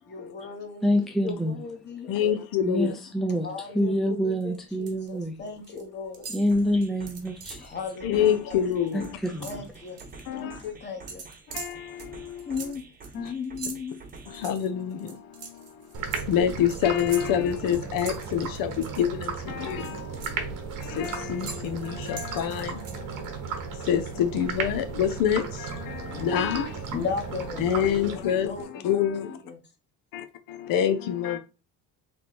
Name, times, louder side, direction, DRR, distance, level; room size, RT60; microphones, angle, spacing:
voice 1, 0.1-2.5 3.4-6.3 7.6-8.6 9.4-10.0 10.3-11.2 12.5-12.8 13.1-14.0 26.9-29.6, left 5 dB, 30° left, 1.0 m, -36 dB
voice 2, 0.8-1.6 2.6-3.5 3.7-5.3 6.3-7.7 8.9-9.6, equal, ahead, 0.5 m, -26 dB
voice 3, 2.1-2.9 8.0-9.2 10.3-10.6 11.5-12.5 13.2-13.3 14.3-26.9 27.6-29.4 30.1-31.4, left 9 dB, 75° left, 0.6 m, -27 dB
sound 1, 4.4-5.1 5.4-5.8 6.1-7.7 8.1-8.3 8.6-10.2 11.1-19.3 19.7-23.3, right 5 dB, 45° right, 1.0 m, -43 dB
sound 2, 6.5-14.5, right 3 dB, 25° right, 0.9 m, -48 dB
sound 3, 15.9-28.6, right 6 dB, 65° right, 1.1 m, -35 dB
3.3 x 2.9 x 4.2 m
cardioid pair, 150°, 34 cm